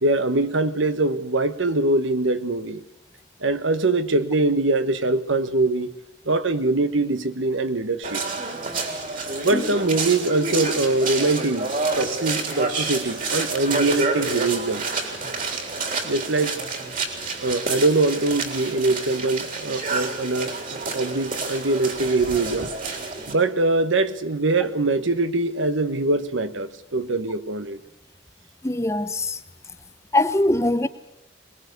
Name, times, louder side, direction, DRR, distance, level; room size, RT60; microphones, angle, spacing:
voice 1, 0.0-2.8 3.4-5.9 6.3-8.2 9.4-14.9 16.0-16.5 17.4-22.7 23.3-27.8, right 2 dB, 75° right, 1.3 m, -23 dB
sound 1, 8.0-23.3, right 3 dB, 45° right, 3.7 m, -28 dB
voice 2, 28.6-29.4 30.1-30.9, left 1 dB, 15° left, 0.9 m, -22 dB
22.5 x 21.0 x 8.2 m
head